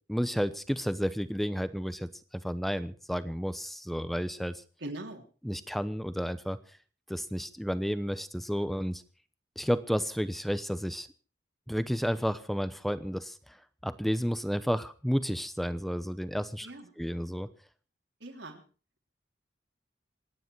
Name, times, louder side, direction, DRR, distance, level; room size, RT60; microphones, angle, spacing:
voice 1, 0.1-4.6 5.4-6.6 7.1-9.0 9.6-11.1 11.7-13.6 13.8-16.7 17.0-17.5, equal, ahead, 14 dB, 0.8 m, -31 dB
voice 2, 4.8-5.2 16.6-16.9 18.2-18.6, right 1 dB, 80° right, 3 dB, 3.4 m, -41 dB
26.5 x 10.0 x 4.7 m, 0.37 s
head